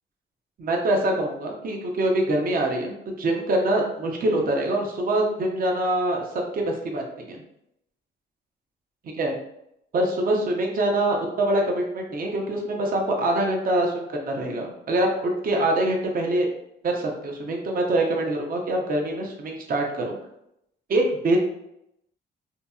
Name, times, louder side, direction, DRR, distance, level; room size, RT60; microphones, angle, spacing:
voice 1, 0.6-6.2 6.5-7.4 9.2-9.4 9.9-16.5 16.8-20.2 20.9-21.4, right 1 dB, 45° right, 1 dB, 0.7 m, -24 dB
2.8 x 2.6 x 2.3 m, 0.79 s
cardioid pair, 90°, 20 cm